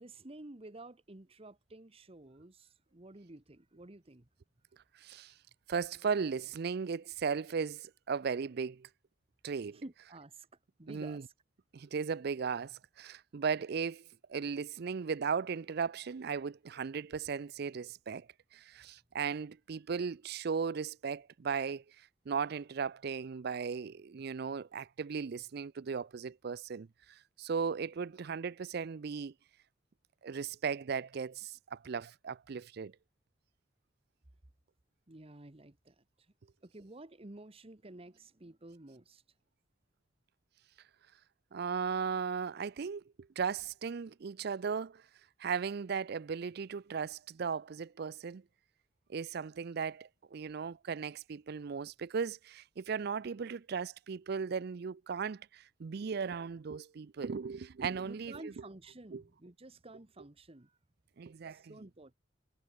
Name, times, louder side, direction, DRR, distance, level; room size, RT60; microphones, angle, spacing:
voice 1, 0.0-4.3 9.7-10.5 10.8-11.2 35.1-36.0 36.6-39.2 58.0-60.8 61.5-62.1, right 2 dB, 30° right, 1.2 m, -51 dB
voice 2, 4.9-5.3 5.7-8.9 9.4-9.8 10.9-11.2 11.7-29.3 30.2-33.0 41.5-43.0 43.4-45.0 45.4-48.4 49.1-58.5 59.1-59.2 61.2-61.7, right 6 dB, 55° right, 0.4 m, -37 dB
head